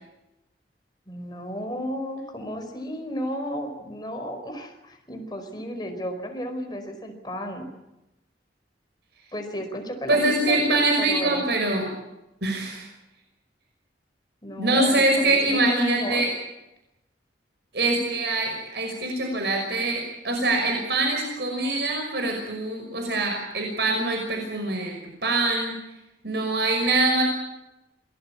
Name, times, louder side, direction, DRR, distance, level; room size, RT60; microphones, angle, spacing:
voice 1, 1.1-7.7 9.3-11.5 14.4-16.3, equal, 25° left, 4 dB, 4.7 m, -33 dB
voice 2, 10.1-11.9 12.4-12.9 14.6-16.3 17.7-25.7 26.2-27.2, right 2 dB, 70° right, 2 dB, 5.8 m, -24 dB
27.0 x 19.5 x 8.6 m, 0.95 s
head